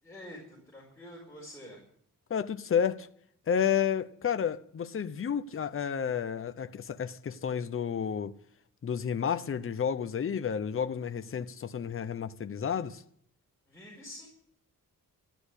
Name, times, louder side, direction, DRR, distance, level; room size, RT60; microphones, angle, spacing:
voice 1, 0.0-1.8 13.7-14.3, left 1 dB, 10° left, 5.0 m, -47 dB
voice 2, 2.3-3.1 3.5-8.3 8.8-13.0, left 7 dB, 40° left, 0.8 m, -31 dB
13.5 x 12.0 x 8.3 m
wide cardioid pair, 150°, 34 cm